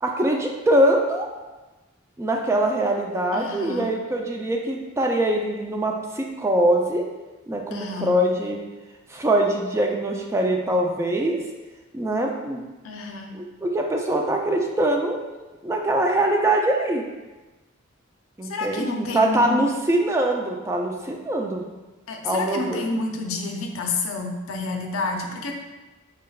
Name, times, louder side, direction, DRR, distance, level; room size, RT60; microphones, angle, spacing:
voice 1, 0.0-1.3 2.2-7.0 7.5-8.6 9.1-11.4 11.9-12.6 13.3-15.3 15.6-17.0 18.4-21.6 22.2-22.9, right 1 dB, 15° right, 1 dB, 0.3 m, -23 dB
voice 2, 3.3-3.8 7.7-8.1 12.8-13.3 18.4-19.6 22.1-25.5, left 3 dB, 80° left, 2 dB, 0.5 m, -29 dB
4.6 x 3.3 x 2.3 m, 1.2 s
head